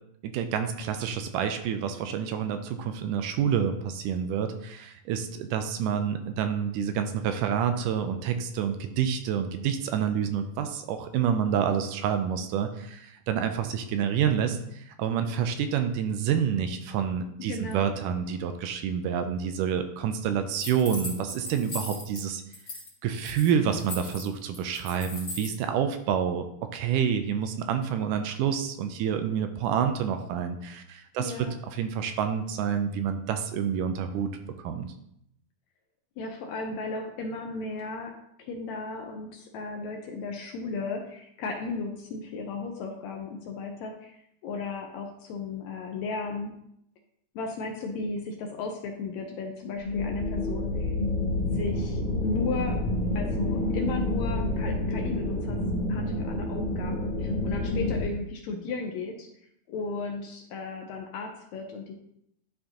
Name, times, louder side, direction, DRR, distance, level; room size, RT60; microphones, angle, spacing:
voice 1, 0.2-22.4 23.0-26.5 26.7-34.3 34.6-34.9, right 8 dB, 80° right, 7 dB, 2.0 m, -28 dB
voice 2, 17.5-17.9 31.2-31.5 36.2-38.1 38.4-44.2 44.4-46.5 47.3-50.9 51.4-52.8 53.1-55.6 55.9-59.3 59.7-61.9, left 3 dB, 75° left, 2 dB, 1.6 m, -35 dB
sound 1, 20.6-22.2 22.5-22.9 23.1-25.6, left 2 dB, 30° left, 1.1 m, -38 dB
sound 2, 49.8-58.0, left 1 dB, 55° left, 2.0 m, -28 dB
11.5 x 4.4 x 2.9 m, 0.75 s
omnidirectional pair, 4.0 m